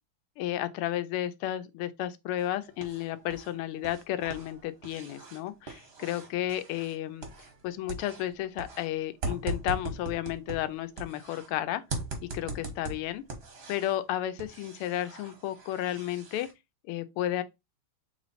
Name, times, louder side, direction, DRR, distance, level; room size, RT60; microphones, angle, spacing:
voice 1, 0.4-7.3 7.6-11.8 12.3-13.2 13.7-16.5 16.9-17.4, left 13 dB, 85° left, 1.5 m, -32 dB
sound 1, 2.4-3.5 3.8-7.6 7.9-11.5 11.9-14.0 14.4-16.5, right 2 dB, 45° right, 0.8 m, -40 dB
3.3 x 3.1 x 4.0 m
omnidirectional pair, 2.4 m